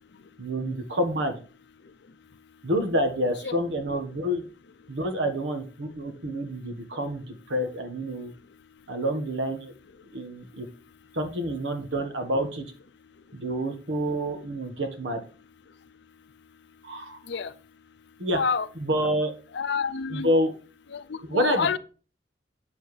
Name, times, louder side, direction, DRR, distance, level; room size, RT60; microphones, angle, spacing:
voice 1, 0.4-1.4 2.6-4.4 4.9-8.3 8.9-9.7 10.1-10.7 11.1-12.6 13.3-15.2 16.8-17.2 18.2-18.4 18.8-19.3 20.1-20.5 21.3-21.8, equal, 85° right, 1.4 m, -28 dB
voice 2, 18.3-18.7 19.5-20.3 20.9-21.8, left 5 dB, 65° left, 0.5 m, -28 dB
7.8 x 7.0 x 3.2 m
head